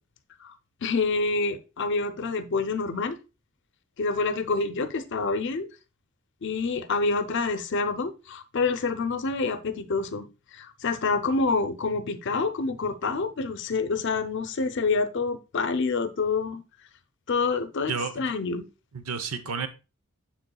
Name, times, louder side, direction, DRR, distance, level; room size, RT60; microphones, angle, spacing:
voice 1, 0.8-3.2 4.0-5.7 6.4-10.3 10.5-16.6 17.3-18.7, left 4 dB, 55° left, 0.6 m, -27 dB
voice 2, 17.9-18.3 18.9-19.7, right 5 dB, 85° right, 0.8 m, -31 dB
7.4 x 6.7 x 2.3 m
head